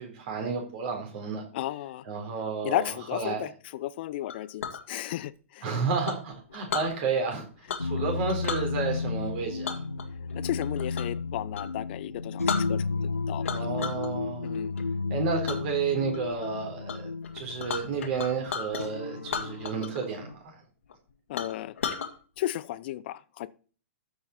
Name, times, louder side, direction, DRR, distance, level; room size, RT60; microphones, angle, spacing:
voice 1, 0.0-1.4 2.1-3.4 5.6-7.5 7.8-9.8 13.5-14.5 15.1-17.1 17.3-20.3, right 5 dB, 45° right, 4.0 m, -31 dB
voice 2, 1.5-2.0 2.6-5.7 8.0-8.2 10.3-13.9 14.4-14.7 21.3-21.7 22.4-23.5, left 14 dB, 45° left, 0.7 m, -34 dB
Chink clink, 4.3-4.8 6.1-6.9 7.7-8.0 8.3-8.7 9.6-11.2 11.5-11.7 12.1-12.2 12.5-13.1 13.4-14.1 14.5-14.8 15.5-15.6 16.1-16.5 16.9-17.0 17.2-18.8 19.2-20.1 20.3-20.4 20.9-21.0 21.4-22.1, left 6 dB, 65° left, 2.0 m, -34 dB
sound 1, 7.8-20.3, left 4 dB, 90° left, 1.4 m, -33 dB
14.0 x 5.8 x 4.4 m
figure-of-eight pair, 115°, 8 cm